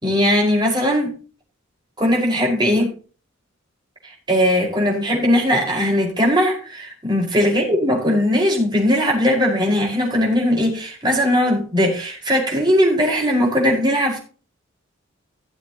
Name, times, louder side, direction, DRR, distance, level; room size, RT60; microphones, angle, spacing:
voice 1, 0.0-1.1 2.0-2.9 4.0-14.2, equal, 20° right, -1 dB, 5.1 m, -19 dB
17.5 x 7.4 x 3.0 m, 0.36 s
head